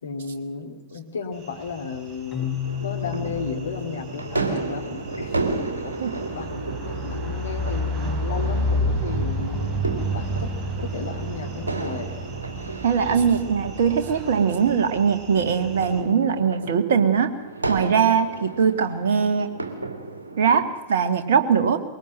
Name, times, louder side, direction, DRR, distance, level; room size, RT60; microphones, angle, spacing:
voice 1, 0.0-5.4 5.8-6.0 6.3-10.5 10.8-12.1, left 4 dB, 70° left, 5 dB, 2.6 m, -34 dB
sound 1, 1.4-16.0, equal, 25° right, 4.3 m, -31 dB
Keyboard (musical), 2.3-6.0, left 10 dB, 25° left, 3.4 m, -34 dB
sound 2, 2.6-20.6, right 3 dB, 75° right, 2.5 m, -33 dB
voice 2, 12.8-17.3 17.7-19.5 20.4-21.8, right 6 dB, 60° right, 8 dB, 1.9 m, -21 dB
22.5 x 19.0 x 7.7 m, 1.0 s
figure-of-eight pair, 90°, 0 cm